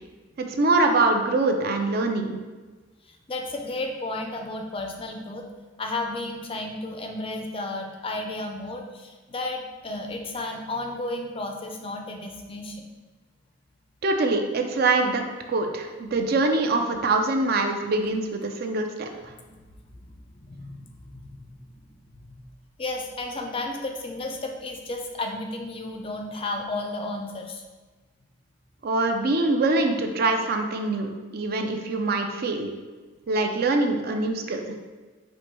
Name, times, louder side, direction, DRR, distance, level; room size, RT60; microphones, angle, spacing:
voice 1, 0.4-2.4 14.0-15.2 15.5-19.1 28.8-32.7 33.3-34.7, right 2 dB, 50° right, 4 dB, 0.4 m, -24 dB
voice 2, 3.0-5.5 5.8-12.9 19.4-19.6 20.0-20.8 21.1-21.6 22.2-22.4 22.8-27.6, left 2 dB, 30° left, 3 dB, 0.4 m, -33 dB
4.5 x 2.6 x 4.3 m, 1.3 s
head